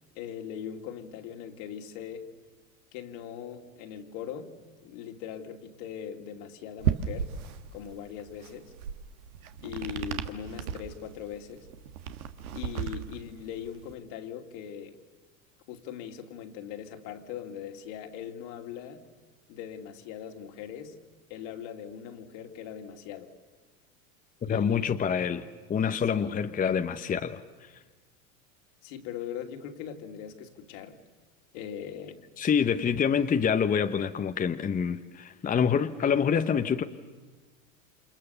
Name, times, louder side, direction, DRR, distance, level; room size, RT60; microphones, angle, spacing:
voice 1, 0.1-2.3 2.9-4.5 4.8-7.3 7.7-8.7 9.6-11.7 12.5-15.0 15.7-19.0 19.5-20.9 21.3-23.3 24.4-25.0 26.1-26.4 28.8-31.0 31.5-32.2, left 9 dB, 60° left, 2.7 m, -40 dB
sound 1, 6.8-13.9, right 8 dB, 85° right, 1.6 m, -35 dB
voice 2, 24.4-25.4 25.7-27.7 32.4-36.8, left 7 dB, 20° left, 0.9 m, -26 dB
29.0 x 27.0 x 6.9 m
hypercardioid pair, 100°, 42 cm